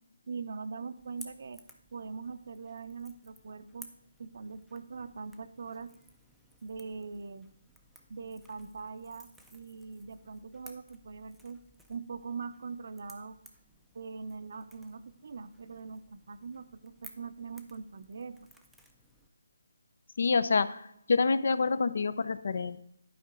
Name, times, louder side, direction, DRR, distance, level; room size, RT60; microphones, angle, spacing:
voice 1, 0.3-1.6 1.9-3.9 4.2-5.9 6.6-7.5 8.1-11.6 11.9-13.4 13.9-18.4, right 5 dB, 55° right, 12 dB, 0.5 m, -42 dB
Crackle / Crack, 1.0-19.3, equal, ahead, 0.4 m, -57 dB
voice 2, 20.2-22.8, left 4 dB, 60° left, 15 dB, 0.5 m, -27 dB
11.0 x 4.9 x 3.7 m, 0.79 s
hypercardioid pair, 165°, 0 cm